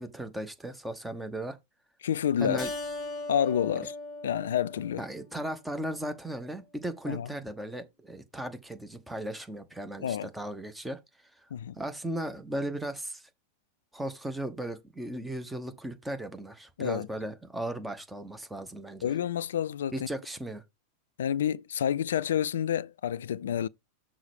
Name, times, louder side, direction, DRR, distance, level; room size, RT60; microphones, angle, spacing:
voice 1, 0.0-1.6 2.4-2.7 5.0-11.0 11.7-13.2 13.9-19.1 19.9-20.6, right 1 dB, 5° right, 1.0 m, -36 dB
voice 2, 2.0-2.7 3.3-3.9 4.2-5.0 7.1-7.3 10.0-10.3 11.5-11.8 16.8-17.1 19.0-20.1 21.2-23.7, left 9 dB, 60° left, 0.3 m, -29 dB
Keyboard (musical), 2.6-5.5, left 2 dB, 25° left, 1.2 m, -39 dB
6.3 x 4.4 x 5.0 m
figure-of-eight pair, 90°, 0 cm